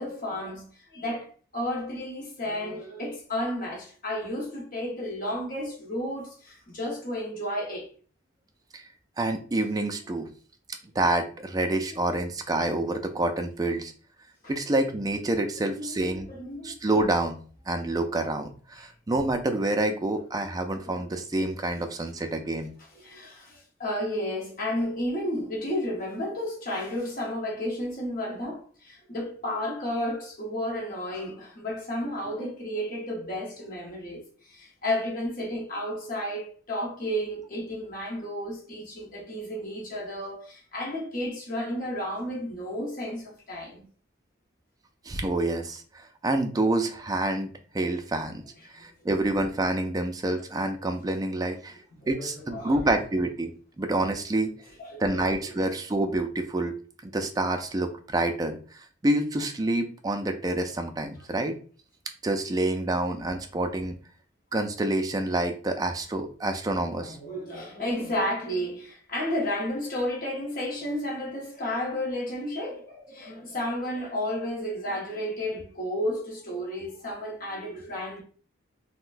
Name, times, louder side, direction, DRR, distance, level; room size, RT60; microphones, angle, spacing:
voice 1, 0.0-7.9 14.4-14.5 15.6-16.7 20.3-21.0 22.9-43.8 51.9-52.9 54.8-55.6 66.9-78.2, left 1 dB, 45° left, 0.9 m, -32 dB
voice 2, 9.2-10.3 11.0-13.9 14.5-16.3 16.6-17.4 17.7-22.7 45.1-45.8 46.2-48.4 48.7-51.8 52.1-53.5 53.8-54.5 55.0-56.7 57.0-61.5 62.2-64.0 64.5-67.2, right 2 dB, 20° right, 0.3 m, -27 dB
3.8 x 2.1 x 2.5 m
head